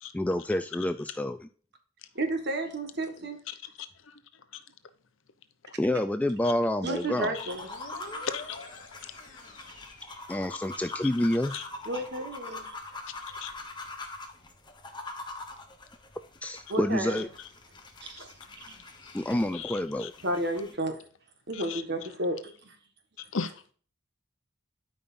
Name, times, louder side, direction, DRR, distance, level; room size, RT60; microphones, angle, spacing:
voice 1, 0.1-1.5 5.8-7.4 10.3-11.5 16.4-17.3 19.1-20.1, left 1 dB, 5° left, 0.3 m, -28 dB
voice 2, 2.2-3.4 6.8-7.7 11.9-12.7 16.7-17.2 18.0-18.3 18.7-18.8 20.2-21.0 21.5-22.8, right 1 dB, 55° right, 1.6 m, -32 dB
voice 3, 3.5-4.1 4.5-4.6 7.3-7.5 8.2-8.6 11.5-11.6 13.4-13.5 19.0-19.2 19.5-20.1 21.5-21.8 23.3-23.5, left 6 dB, 70° left, 0.8 m, -37 dB
sound 1, 7.3-20.7, left 2 dB, 25° left, 1.1 m, -43 dB
sound 2, 7.5-11.0, left 2 dB, 40° left, 2.8 m, -48 dB
12.5 x 5.3 x 2.6 m
head